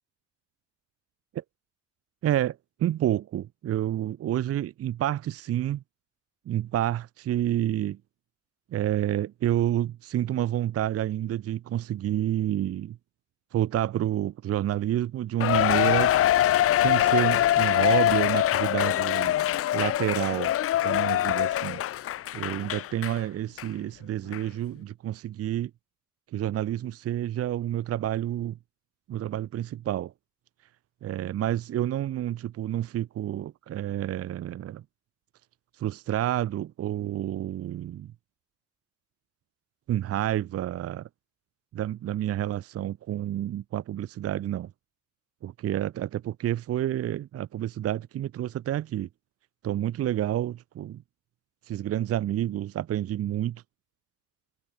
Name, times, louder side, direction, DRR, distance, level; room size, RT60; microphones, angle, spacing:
voice 1, 2.2-5.8 6.5-8.0 8.7-13.0 13.5-16.1 16.7-19.3 19.7-20.5 20.8-21.8 22.3-25.7 26.3-28.6 29.1-30.1 31.0-34.8 35.8-38.1 39.9-41.1 41.7-44.7 45.4-49.1 49.6-51.0 51.7-53.6, right 12 dB, 50° right, 0.6 m, -29 dB
Cheering, 15.4-23.2 23.6-23.7 24.3-24.4, left 12 dB, 50° left, 0.5 m, -24 dB
cardioid pair, 90°, 30 cm